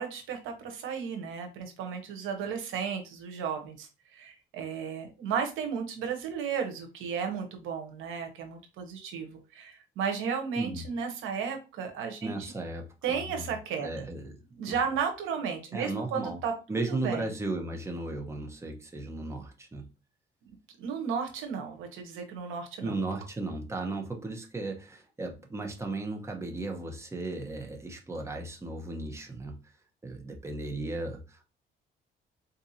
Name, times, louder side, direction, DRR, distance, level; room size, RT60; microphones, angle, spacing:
voice 1, 0.0-12.5 13.0-14.0 14.6-16.5 17.0-17.2 20.8-22.9, right 6 dB, 90° right, 0.9 m, -34 dB
voice 2, 12.2-13.5 13.8-14.4 14.7-14.8 15.7-16.4 16.7-19.9 22.8-29.7 30.0-31.4, right 2 dB, 15° right, 0.9 m, -35 dB
4.1 x 2.7 x 2.7 m
cardioid pair, 90°, 20 cm